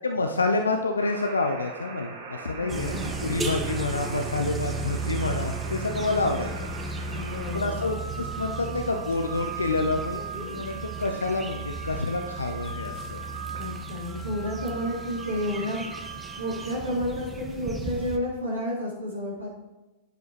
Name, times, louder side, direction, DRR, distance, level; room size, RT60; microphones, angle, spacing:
voice 1, 0.0-6.5 7.5-13.2, left 3 dB, 80° left, 5 dB, 0.6 m, -28 dB
sound 1, 1.0-16.7, right 5 dB, 60° right, 2.0 m, -40 dB
voice 2, 2.6-3.3 7.1-7.9 13.6-15.8 16.4-19.5, left 1 dB, 80° right, -6 dB, 3.5 m, -31 dB
sound 2, 2.7-18.2, right 3 dB, 15° right, 1.1 m, -35 dB
10.0 x 9.3 x 3.2 m, 1.0 s
figure-of-eight pair, 95°, 0 cm